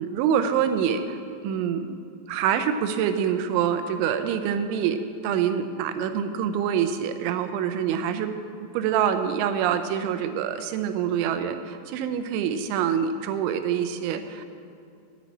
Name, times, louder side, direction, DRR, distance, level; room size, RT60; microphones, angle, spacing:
voice 1, 0.0-1.9 2.3-8.3 8.7-14.5, right 8 dB, 85° right, 8 dB, 3.2 m, -26 dB
10.0 x 9.5 x 8.6 m, 2.5 s
omnidirectional pair, 5.4 m